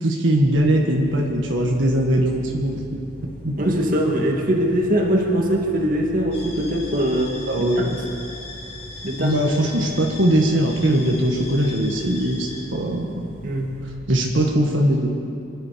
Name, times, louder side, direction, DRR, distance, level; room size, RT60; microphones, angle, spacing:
voice 1, 0.0-3.2 3.4-3.5 7.5-8.0 9.2-13.3 14.1-15.1, right 1 dB, 80° right, 0 dB, 1.6 m, -21 dB
sound 1, 0.5-13.9, left 1 dB, 5° left, 2.7 m, -42 dB
voice 2, 3.6-7.8 9.0-9.3 13.4-13.7, equal, 45° right, 0 dB, 2.0 m, -22 dB
sound 2, 6.3-12.6, left 2 dB, 30° left, 2.9 m, -38 dB
25.0 x 11.0 x 5.1 m, 2.7 s
head